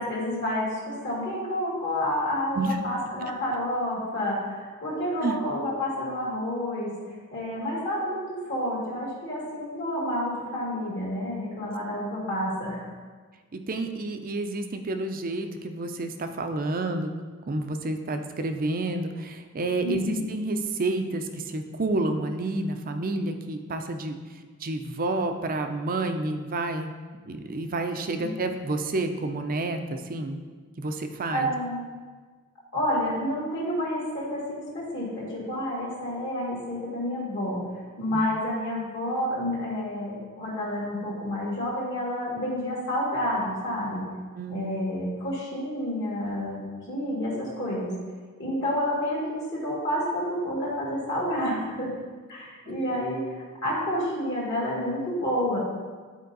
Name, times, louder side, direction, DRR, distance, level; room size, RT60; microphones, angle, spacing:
voice 1, 0.0-6.9 7.3-12.8 19.8-20.2 28.2-28.3 31.3-31.9 32.7-37.6 38.0-44.0 44.5-48.0 48.4-51.9 52.3-55.6, left 1 dB, 55° left, -7 dB, 1.9 m, -29 dB
voice 2, 13.5-17.1 17.5-24.2 24.6-26.9 27.3-30.4 30.8-31.5 38.1-38.2 44.4-44.6, right 2 dB, 40° right, 6 dB, 0.5 m, -29 dB
9.3 x 4.4 x 3.9 m, 1.5 s
head